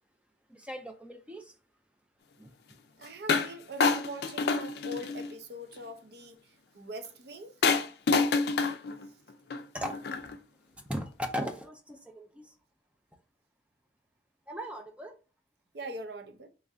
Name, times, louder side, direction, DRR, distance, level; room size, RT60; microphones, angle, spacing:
voice 1, 0.5-1.5 2.4-2.5 8.1-8.2 9.7-9.9 10.9-12.5 14.5-15.2, equal, 5° right, 0.4 m, -38 dB
voice 2, 3.0-7.6 15.7-16.5, right 1 dB, 60° right, 0.6 m, -42 dB
sound 1, 3.3-3.5 3.8-5.3 7.6-10.4, left 4 dB, 55° left, 0.4 m, -27 dB
3.1 x 2.5 x 3.6 m
head